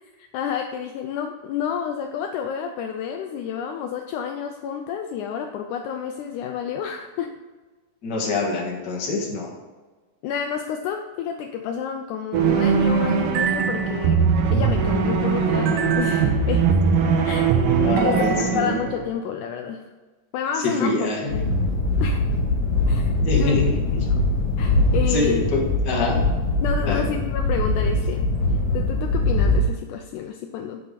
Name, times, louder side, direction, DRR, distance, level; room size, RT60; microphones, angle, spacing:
voice 1, 0.2-7.3 10.2-14.2 14.5-16.7 17.3-17.5 17.8-19.8 20.3-21.5 22.0-22.2 22.9-23.1 23.4-24.3 24.6-25.5 26.6-30.8, left 7 dB, 85° left, 4 dB, 1.7 m, -30 dB
voice 2, 8.0-9.5 17.8-18.8 20.6-21.4 23.2-23.8 25.0-26.2 26.9-27.0, left 3 dB, 40° left, -2 dB, 1.7 m, -25 dB
sound 1, 12.3-19.0, right 6 dB, 75° right, 2.4 m, -20 dB
sound 2, 21.3-29.6, left 2 dB, 60° left, 2.8 m, -22 dB
8.4 x 6.0 x 5.2 m, 1.3 s
omnidirectional pair, 4.1 m